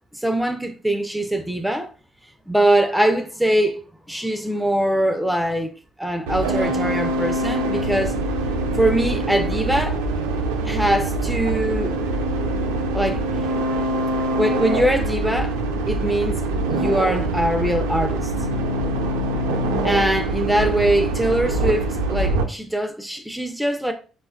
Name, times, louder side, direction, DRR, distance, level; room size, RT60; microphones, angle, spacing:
voice 1, 0.1-1.9 2.5-3.8 4.1-5.7 6.0-8.1 8.7-10.0 10.6-12.0 12.9-13.2 14.4-15.6 15.9-16.4 16.7-18.3 19.8-23.9, right 1 dB, 5° right, 0.4 m, -22 dB
sound 1, 6.3-22.4, right 2 dB, 85° right, 0.3 m, -24 dB
4.1 x 2.2 x 2.2 m
hypercardioid pair, 50°, 0 cm